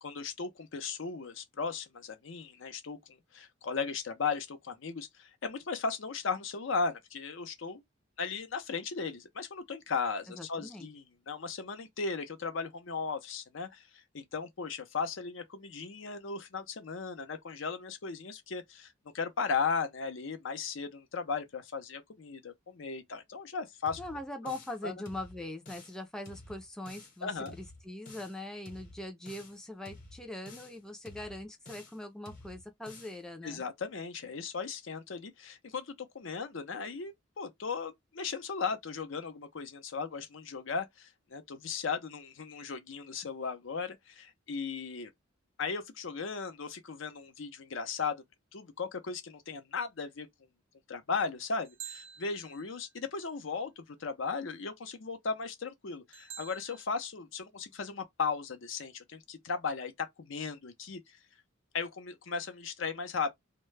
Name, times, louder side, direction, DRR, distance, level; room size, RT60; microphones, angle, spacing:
voice 1, 0.0-7.8 8.2-24.0 24.8-24.9 27.2-27.5 33.4-45.1 45.6-48.2 48.5-50.3 50.9-61.2 61.7-63.3, left 5 dB, 80° left, 0.6 m, -36 dB
voice 2, 10.3-10.9 24.0-33.6, left 1 dB, 5° left, 0.4 m, -42 dB
sound 1, 23.9-24.8 25.1-26.0 26.3-27.2 27.5-28.4 28.7-29.6 29.9-30.8 31.1-32.0 32.3-33.2, left 2 dB, 45° left, 0.9 m, -51 dB
sound 2, 51.6-53.0 56.1-56.8, right 9 dB, 75° right, 0.5 m, -48 dB
2.2 x 2.0 x 3.2 m
head